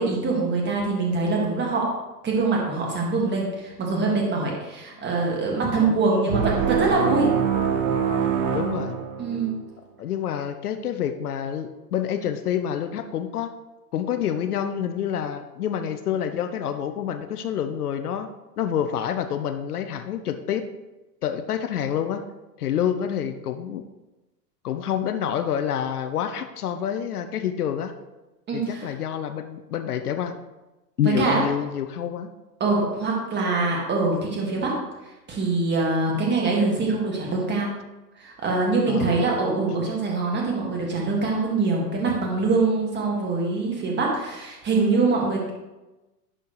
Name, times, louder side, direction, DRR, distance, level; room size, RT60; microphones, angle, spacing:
voice 1, 0.0-1.9 2.2-7.3 9.2-9.5 28.5-28.9 31.2-31.4 32.6-34.7 35.3-37.7 38.2-45.5, right 3 dB, 20° right, -2 dB, 2.1 m, -24 dB
voice 2, 5.8-6.1 8.5-9.0 10.0-13.5 13.9-18.3 18.6-20.6 21.2-22.2 22.6-23.8 24.6-27.9 28.5-30.4 31.0-32.3 38.9-39.1, left 9 dB, 65° left, 8 dB, 0.8 m, -27 dB
sound 1, 6.3-9.6, right 7 dB, 50° right, 1.0 m, -24 dB
11.0 x 4.4 x 3.2 m, 1.0 s
figure-of-eight pair, 100°, 48 cm